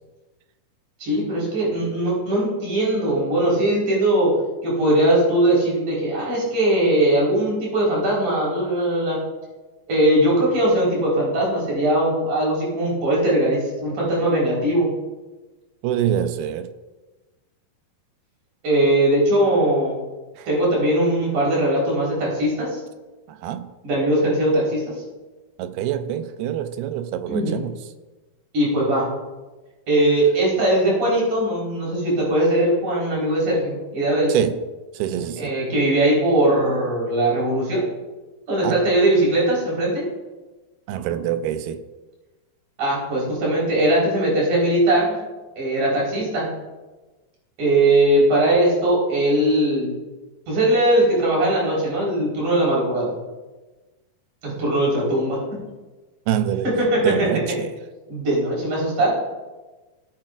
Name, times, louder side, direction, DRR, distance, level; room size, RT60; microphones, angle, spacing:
voice 1, 1.0-4.3 4.6-9.2 9.9-14.9 18.6-20.0 20.5-22.8 23.8-24.9 27.3-27.5 28.5-29.1 29.9-34.3 35.4-37.8 38.5-40.0 42.8-45.2 45.6-46.5 47.6-49.9 50.5-53.1 54.4-55.6 56.6-57.1 58.1-59.1, right 1 dB, 55° right, -5 dB, 5.6 m, -20 dB
voice 2, 15.8-16.7 20.4-20.5 23.3-23.7 25.6-27.7 34.3-34.6 34.9-35.5 38.6-38.8 40.9-41.8 56.3-56.7 57.0-57.7, right 10 dB, 90° right, 9 dB, 2.5 m, -25 dB
17.5 x 8.9 x 2.5 m, 1.2 s
omnidirectional pair, 4.3 m